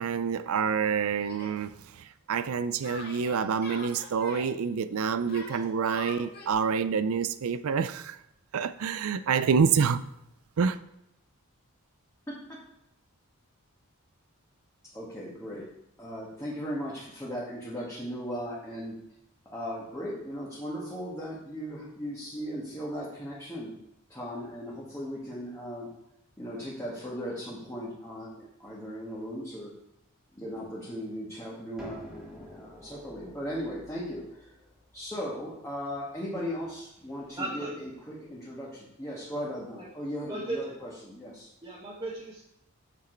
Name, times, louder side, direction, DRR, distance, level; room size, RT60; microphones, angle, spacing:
voice 1, 0.0-1.8 2.3-8.2 8.5-10.0 10.6-10.8, right 6 dB, 70° right, 0.4 m, -27 dB
Yell, 1.3-1.6 2.8-4.5 5.3-6.5, left 3 dB, 45° left, 1.8 m, -43 dB
voice 2, 12.3-12.6 14.8-15.7 16.0-19.0 19.4-23.8 24.1-25.9 26.4-29.7 30.3-34.5 34.9-41.5, equal, 15° left, 1.5 m, -37 dB
sound 1, 31.8-37.4, equal, ahead, 1.8 m, -50 dB
voice 3, 37.4-37.7 40.3-40.7 41.6-42.4, right 2 dB, 20° right, 1.3 m, -35 dB
7.4 x 6.1 x 4.5 m
head